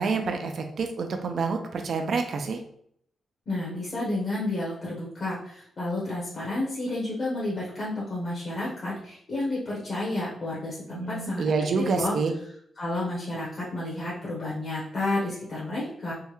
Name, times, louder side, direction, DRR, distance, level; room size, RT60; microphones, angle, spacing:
voice 1, 0.0-2.6 10.9-12.3, right 4 dB, 70° right, 5 dB, 0.5 m, -27 dB
voice 2, 3.5-12.2 12.8-16.1, left 2 dB, 50° left, -7 dB, 1.0 m, -31 dB
3.5 x 2.1 x 3.1 m, 0.67 s
cardioid pair, 75°, 0 cm